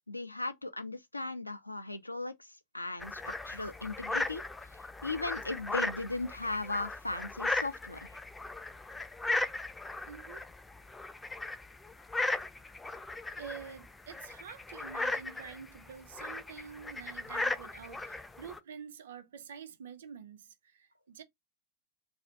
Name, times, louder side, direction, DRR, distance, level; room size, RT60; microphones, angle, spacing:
voice 1, 0.1-4.4 5.0-8.2, left 2 dB, 85° left, 0.4 m, -37 dB
sound 1, 3.0-18.6, left 2 dB, 10° left, 0.3 m, -37 dB
voice 2, 10.1-10.5 13.3-21.2, right 7 dB, 60° right, 0.4 m, -47 dB
2.4 x 2.4 x 3.4 m
figure-of-eight pair, 90°, 0 cm